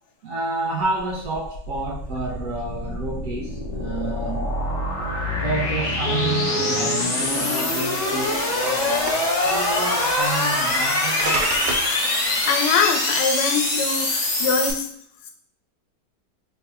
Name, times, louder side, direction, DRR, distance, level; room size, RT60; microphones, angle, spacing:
voice 1, 0.2-4.6 5.3-11.6, right 2 dB, 65° right, -1 dB, 0.8 m, -30 dB
sound 1, 1.0-14.7, left 2 dB, 65° left, 0.4 m, -24 dB
sound 2, 5.0-5.1 5.4-5.5 6.1-7.0 7.9-8.7 9.0-9.4 10.6-10.7 11.2-12.0, right 2 dB, 85° right, 1.3 m, -28 dB
voice 2, 12.5-14.9, left 6 dB, 85° left, 4 dB, 1.2 m, -23 dB
3.3 x 2.1 x 4.1 m, 0.66 s
omnidirectional pair, 1.9 m